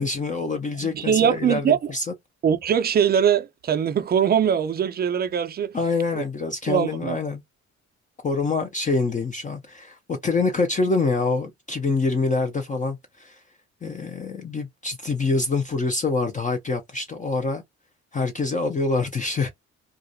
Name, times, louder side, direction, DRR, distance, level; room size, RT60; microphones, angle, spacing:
voice 1, 0.0-2.1 5.7-7.4 8.2-13.4 13.8-17.6 18.1-19.5, left 3 dB, 25° left, 0.4 m, -25 dB
voice 2, 0.8-1.9 2.4-5.8 6.1-6.2 6.7-7.2, right 8 dB, 35° right, 0.4 m, -22 dB
2.3 x 2.0 x 2.6 m
cardioid pair, 90°, 30 cm